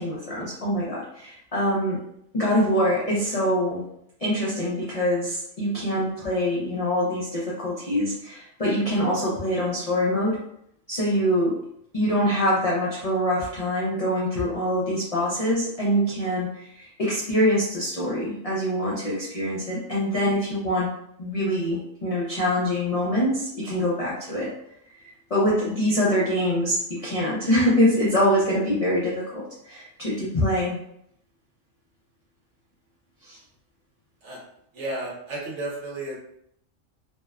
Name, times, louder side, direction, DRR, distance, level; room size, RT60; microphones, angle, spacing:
voice 1, 0.0-2.0 2.3-3.8 4.2-10.4 10.9-11.6 11.9-20.9 21.2-24.5 25.0-30.8 33.2-33.4, equal, 60° left, -6 dB, 0.3 m, -24 dB
voice 2, 34.7-36.2, right 2 dB, 65° right, -3 dB, 1.0 m, -32 dB
2.6 x 2.1 x 2.3 m, 0.72 s
omnidirectional pair, 1.4 m